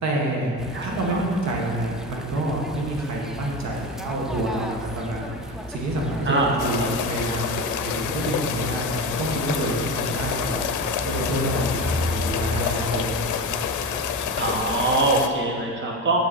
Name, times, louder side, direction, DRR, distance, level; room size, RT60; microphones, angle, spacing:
voice 1, 0.0-6.3 6.6-10.6 11.0-13.2, right 1 dB, 60° right, -1 dB, 1.7 m, -27 dB
sound 1, 0.6-15.2, left 1 dB, ahead, 0.5 m, -34 dB
voice 2, 0.7-1.2 6.2-6.9 14.4-16.3, right 2 dB, 40° right, 0 dB, 1.4 m, -23 dB
sound 2, 6.6-15.3, left 9 dB, 80° left, 0.5 m, -28 dB
7.8 x 6.4 x 4.3 m, 2.4 s
cardioid pair, 90°, 30 cm